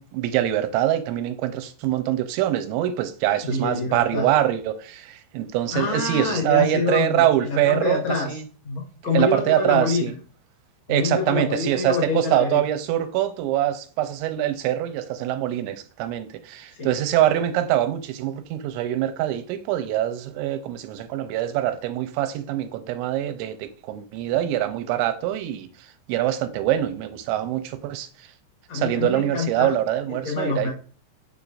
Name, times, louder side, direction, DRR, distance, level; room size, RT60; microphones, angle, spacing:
voice 1, 0.0-8.5 9.1-10.1 10.9-25.7 26.1-28.3 28.7-30.7, right 12 dB, 90° right, 2.9 m, -24 dB
voice 2, 3.4-4.3 5.7-8.4 8.6-10.1 10.9-12.6 16.7-17.0 28.7-29.7 30.1-30.7, left 4 dB, 90° left, 1.1 m, -26 dB
7.0 x 6.5 x 2.6 m
omnidirectional pair, 5.3 m